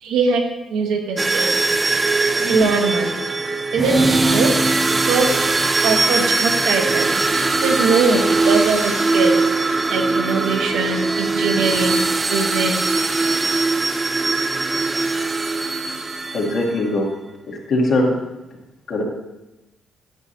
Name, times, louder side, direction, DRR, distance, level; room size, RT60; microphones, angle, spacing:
voice 1, 0.0-0.4 0.7-1.5 2.5-3.1 3.7-4.6 5.1-5.4 5.8-7.4 7.6-9.3 9.9-12.0 12.3-12.7, right 4 dB, 85° right, 2 dB, 1.1 m, -21 dB
sound 1, 1.2-16.8, right 3 dB, 25° right, 0.4 m, -20 dB
voice 2, 2.3-2.7 16.3-17.1 17.5-18.2 18.9-19.0, left 1 dB, 65° left, -2 dB, 1.9 m, -21 dB
10.5 x 6.4 x 2.9 m, 1.0 s
cardioid pair, 90°, 0 cm